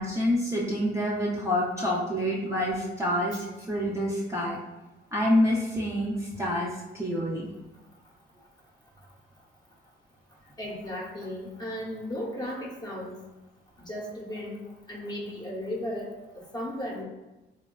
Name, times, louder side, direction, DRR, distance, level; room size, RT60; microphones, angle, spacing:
voice 1, 0.0-4.6 5.1-6.7 6.9-7.5, left 1 dB, 15° right, -5 dB, 0.5 m, -27 dB
voice 2, 10.6-13.2 13.8-14.6 14.9-17.0, left 1 dB, 20° left, -2 dB, 0.8 m, -35 dB
3.4 x 2.2 x 2.2 m, 1.1 s
cardioid pair, 90°, 20 cm